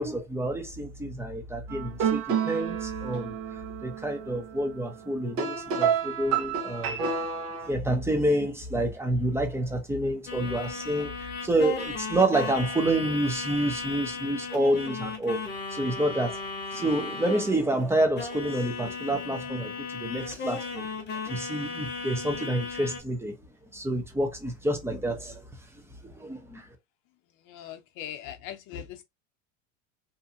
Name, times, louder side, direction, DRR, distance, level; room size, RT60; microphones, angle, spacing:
voice 1, 0.0-3.3 3.8-7.0 7.7-11.1 11.4-16.4 16.7-19.7 20.0-20.9 21.2-23.4 23.7-25.4 26.0-26.6, right 1 dB, 5° right, 0.6 m, -28 dB
sound 1, 1.7-7.7, right 7 dB, 70° right, 0.9 m, -30 dB
sound 2, 10.3-17.8 18.2-23.0, left 4 dB, 25° left, 1.0 m, -36 dB
voice 2, 27.4-29.0, left 10 dB, 50° left, 0.8 m, -40 dB
2.7 x 2.7 x 2.5 m
supercardioid pair, 130°, 39 cm